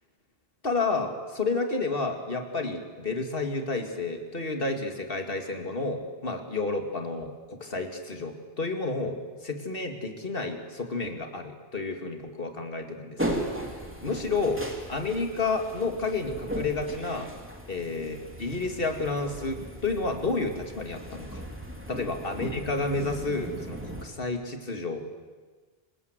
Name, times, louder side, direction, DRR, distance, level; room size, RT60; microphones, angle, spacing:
voice 1, 0.6-9.2 9.4-13.4 14.0-14.6 14.9-17.3 17.7-21.4 21.9-25.2, left 3 dB, 65° left, 4 dB, 2.6 m, -30 dB
sound 1, 13.2-24.0, right 1 dB, 10° right, 3.1 m, -37 dB
25.5 x 20.5 x 8.1 m, 1.4 s
omnidirectional pair, 1.0 m